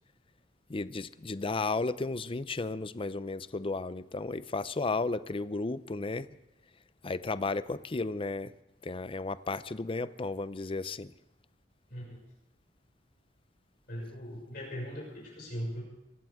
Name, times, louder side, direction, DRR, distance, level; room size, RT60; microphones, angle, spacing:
voice 1, 0.7-6.3 7.0-8.5 8.8-11.1, left 3 dB, 30° left, 15 dB, 0.5 m, -34 dB
voice 2, 13.9-15.8, equal, 60° left, -4 dB, 6.2 m, -39 dB
23.5 x 16.0 x 3.6 m, 0.95 s
head